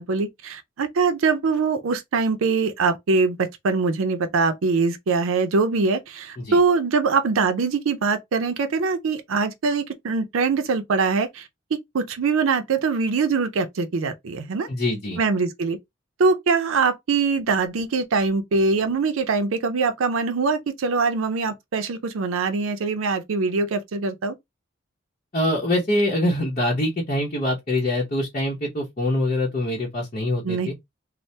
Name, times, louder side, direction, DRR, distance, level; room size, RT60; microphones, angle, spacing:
voice 1, 0.0-14.7 15.2-15.8 16.2-24.4 30.4-30.7, right 4 dB, 85° right, 0.5 m, -23 dB
voice 2, 14.7-15.2 25.3-30.7, left 1 dB, 40° left, 0.7 m, -24 dB
3.2 x 2.0 x 2.7 m
head